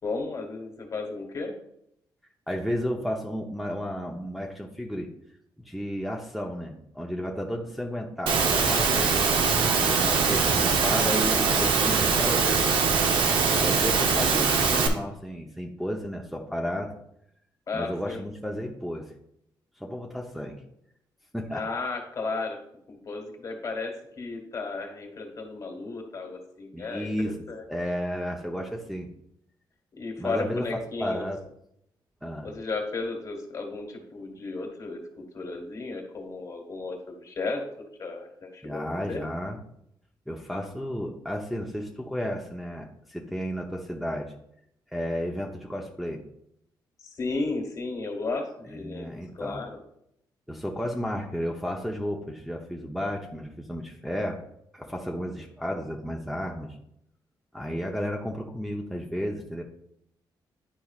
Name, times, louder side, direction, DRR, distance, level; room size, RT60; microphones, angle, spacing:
voice 1, 0.0-1.5 13.4-13.7 17.7-18.3 21.5-22.6 22.9-27.7 29.9-31.3 32.4-38.8 39.1-39.2 47.0-49.8, left 3 dB, 45° left, 3 dB, 1.7 m, -34 dB
voice 2, 2.5-5.1 5.7-9.2 9.8-12.7 13.6-16.9 17.7-19.1 19.8-20.6 21.3-21.6 26.7-27.3 27.7-29.1 30.2-30.6 31.0-31.4 32.2-32.5 38.6-39.6 40.3-44.3 44.9-46.2 48.7-49.6 50.5-54.4 54.7-56.8 57.5-59.6, equal, ahead, -1 dB, 0.8 m, -33 dB
Engine / Mechanisms, 8.3-14.9, right 5 dB, 90° right, 0.8 m, -22 dB
10.0 x 4.6 x 2.4 m, 0.76 s
cardioid pair, 90°, 8 cm